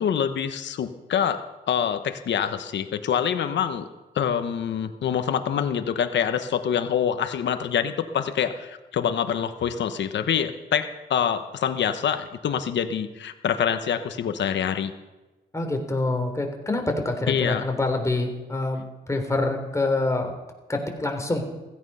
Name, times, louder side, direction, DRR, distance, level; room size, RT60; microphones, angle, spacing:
voice 1, 0.0-3.9 4.1-14.9 17.3-17.6, left 8 dB, 90° left, 9 dB, 1.1 m, -26 dB
voice 2, 15.5-20.3 20.7-21.4, left 2 dB, 15° left, 3 dB, 3.4 m, -26 dB
16.0 x 15.5 x 5.6 m, 1.1 s
cardioid pair, 100°, 18 cm